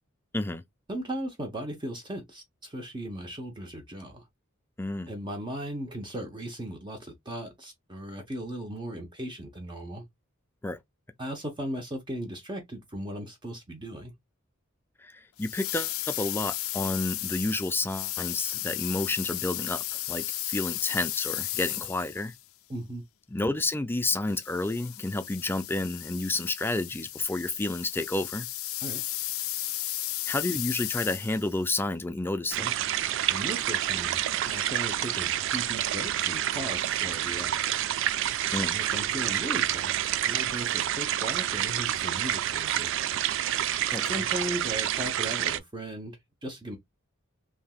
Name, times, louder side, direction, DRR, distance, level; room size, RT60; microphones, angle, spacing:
voice 1, 0.9-4.2 5.1-10.0 11.2-14.1 22.7-23.0 28.8-29.0 33.3-34.2 34.4-35.3 35.5-37.6 38.7-42.9 44.1-46.8, right 1 dB, 20° right, 0.7 m, -37 dB
voice 2, 4.8-5.1 10.6-10.8 15.0-22.3 23.3-28.5 30.3-32.7 38.5-38.8 43.9-44.3, left 2 dB, 10° left, 0.4 m, -30 dB
sound 1, 15.4-22.4 24.3-31.6, left 15 dB, 80° left, 0.4 m, -34 dB
sound 2, 32.5-45.6, right 11 dB, 65° right, 0.3 m, -28 dB
3.4 x 2.8 x 2.3 m
head